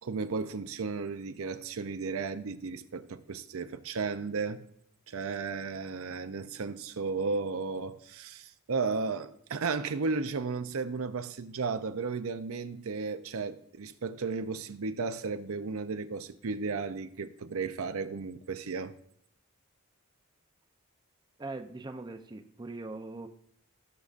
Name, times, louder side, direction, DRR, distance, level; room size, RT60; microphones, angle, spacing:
voice 1, 0.0-4.6 5.1-18.9, right 4 dB, 70° right, 0.6 m, -34 dB
voice 2, 21.4-23.3, right 2 dB, 20° right, 0.5 m, -41 dB
17.0 x 6.5 x 2.5 m
head